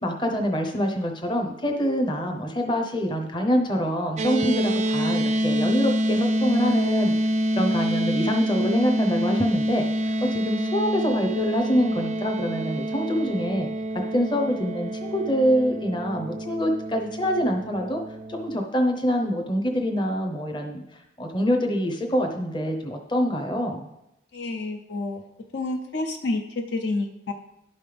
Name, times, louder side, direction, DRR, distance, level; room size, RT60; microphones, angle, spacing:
voice 1, 0.0-7.3 7.6-13.7 14.1-18.0 18.3-20.8 21.2-23.9, equal, 25° left, 3 dB, 0.8 m, -25 dB
sound 1, 4.2-18.6, equal, 35° right, 0.3 m, -26 dB
voice 2, 24.3-25.2 25.5-27.3, left 2 dB, 65° left, 4 dB, 0.6 m, -29 dB
11.0 x 5.4 x 3.4 m, 0.85 s
head